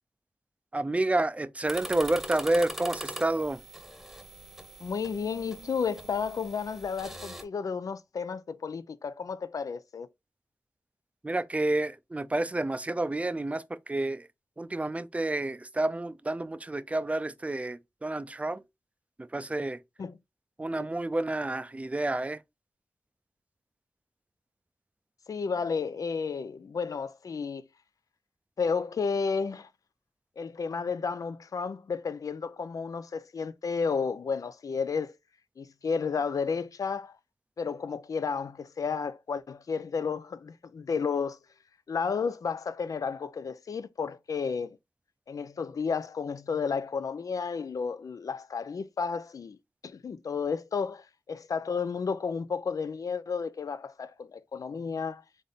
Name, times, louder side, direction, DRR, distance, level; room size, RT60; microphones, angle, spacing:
voice 1, 0.7-3.6 11.2-14.3 14.6-18.6 19.2-19.8 20.6-22.4, right 2 dB, 25° right, 0.4 m, -29 dB
sound 1, 1.6-7.4, equal, ahead, 1.0 m, -42 dB
voice 2, 4.8-10.1 20.0-20.1 20.8-20.9 25.3-27.6 28.6-29.7 30.4-35.1 35.6-37.2 37.6-41.4 41.9-44.8 45.3-49.6 49.8-55.2, left 5 dB, 80° left, 0.4 m, -32 dB
3.8 x 3.5 x 3.9 m
cardioid pair, 55°, 6 cm